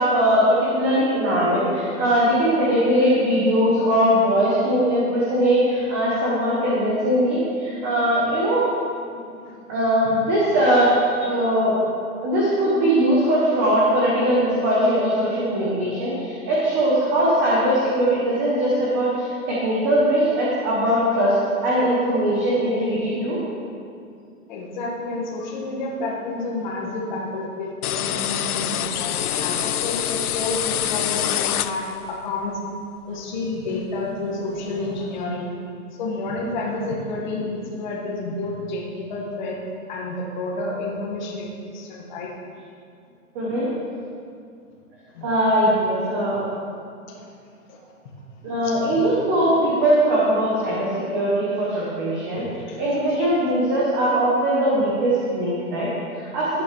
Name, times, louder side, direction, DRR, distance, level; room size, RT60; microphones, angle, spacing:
voice 1, 0.0-8.6 9.7-11.8 12.2-21.4 21.6-23.4 43.3-43.7 45.2-46.4 48.4-52.4 52.8-56.6, right 1 dB, 15° right, -7 dB, 0.8 m, -20 dB
voice 2, 24.5-32.6 33.1-35.6 36.0-39.6 39.9-42.3 45.1-45.3 47.1-47.3 47.7-47.8 48.6-49.0 50.5-50.6 52.5-52.8, left 2 dB, 30° left, -3 dB, 1.7 m, -30 dB
sound 1, 27.8-32.2, left 11 dB, 80° left, 0.6 m, -25 dB
14.5 x 10.0 x 3.2 m, 2.4 s
hypercardioid pair, 170°, 44 cm